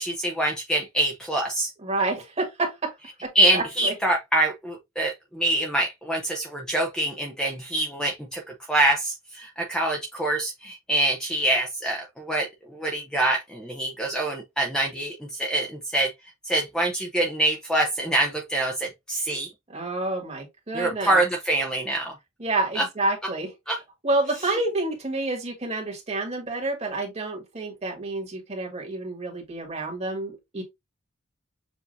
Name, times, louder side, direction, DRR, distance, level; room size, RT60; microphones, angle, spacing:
voice 1, 0.0-1.7 3.3-8.4 8.7-16.1 16.4-19.5 20.7-22.1 22.8-22.9 23.7-23.8, right 1 dB, 5° left, 0.7 m, -25 dB
voice 2, 1.8-2.9 3.2-3.9 19.7-21.2 22.4-23.5 24.0-30.6, right 2 dB, 30° right, 1.9 m, -29 dB
7.0 x 2.7 x 2.6 m
head